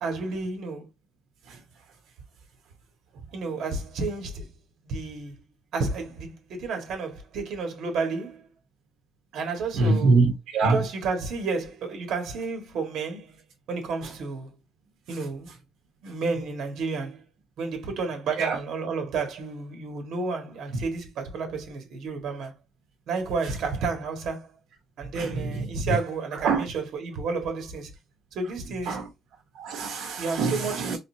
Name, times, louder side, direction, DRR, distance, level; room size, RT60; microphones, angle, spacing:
voice 1, 0.0-0.9 3.3-4.5 4.8-5.4 5.7-8.5 9.3-10.2 10.7-13.4 13.7-14.6 15.1-15.5 16.0-17.2 17.6-22.5 23.1-24.5 25.0-27.9 28.3-29.0 30.2-31.0, right 4 dB, 60° right, 1.7 m, -31 dB
voice 2, 9.7-10.8 18.4-18.6 25.1-25.7 26.4-26.7 28.9-29.0 29.5-31.0, right 3 dB, 85° right, 1.1 m, -24 dB
4.2 x 3.6 x 2.7 m
cardioid pair, 180°, 0 cm